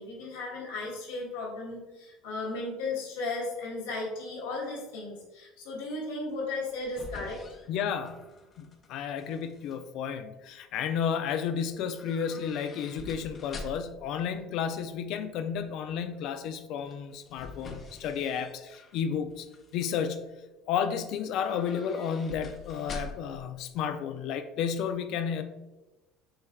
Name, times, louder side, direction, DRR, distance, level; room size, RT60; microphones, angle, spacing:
voice 1, 0.0-7.4, left 2 dB, 85° left, -3 dB, 1.4 m, -35 dB
sound 1, 6.5-8.9 9.2-9.8 12.0-14.1 16.8-19.0 19.4-19.9 21.3-23.4 23.7-23.8, left 3 dB, 40° left, 0.8 m, -45 dB
voice 2, 7.7-19.5 19.7-20.4 20.7-25.4, left 7 dB, 65° left, 9 dB, 0.4 m, -32 dB
6.4 x 3.4 x 2.3 m, 1.1 s
hypercardioid pair, 75°, 0 cm